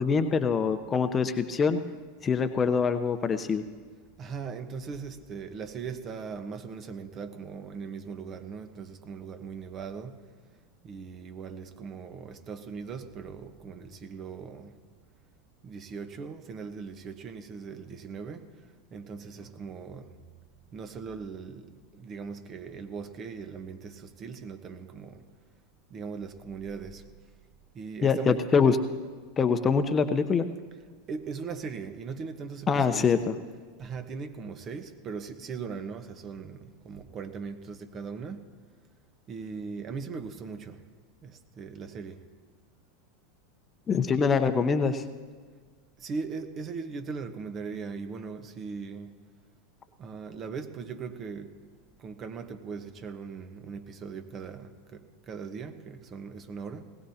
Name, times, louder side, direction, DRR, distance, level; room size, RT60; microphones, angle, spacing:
voice 1, 0.0-1.8 2.2-3.6 28.0-28.8 29.4-30.5 32.7-33.3 43.9-45.0, left 5 dB, 25° left, 0.9 m, -24 dB
voice 2, 4.2-10.2 10.8-14.8 15.6-20.1 20.7-25.3 25.9-27.1 27.7-28.4 31.1-33.1 33.8-38.5 39.3-40.8 41.2-42.2 46.0-49.2 50.0-51.6 52.0-56.9, right 5 dB, 35° right, 1.3 m, -39 dB
20.0 x 17.0 x 2.9 m
hypercardioid pair, 95°, 0 cm